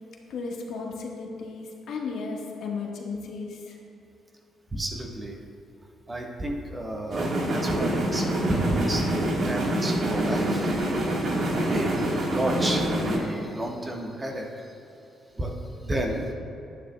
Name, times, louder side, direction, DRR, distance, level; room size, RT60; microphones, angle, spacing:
voice 1, 0.3-3.8, left 4 dB, 70° left, -1 dB, 1.3 m, -34 dB
voice 2, 4.7-5.3 6.1-14.8 15.4-15.5 15.8-16.3, right 1 dB, 25° right, 1 dB, 1.2 m, -31 dB
sound 1, 7.1-13.2, right 1 dB, 60° right, 1.5 m, -26 dB
11.5 x 9.4 x 2.2 m, 2.7 s
cardioid pair, 90°, 0 cm